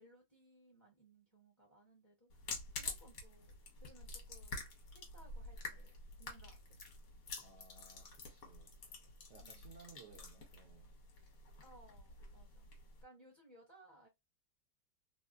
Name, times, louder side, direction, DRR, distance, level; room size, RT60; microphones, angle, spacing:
voice 1, 0.0-5.9 6.2-6.8 7.8-7.9 9.4-9.8 11.6-12.7 13.0-14.1, right 1 dB, 15° left, 0.6 m, -64 dB
sound 1, 2.3-13.0, left 3 dB, 55° left, 1.4 m, -49 dB
voice 2, 7.3-8.7 9.3-10.9, right 5 dB, 60° right, 0.7 m, -60 dB
3.4 x 2.1 x 2.5 m
omnidirectional pair, 2.1 m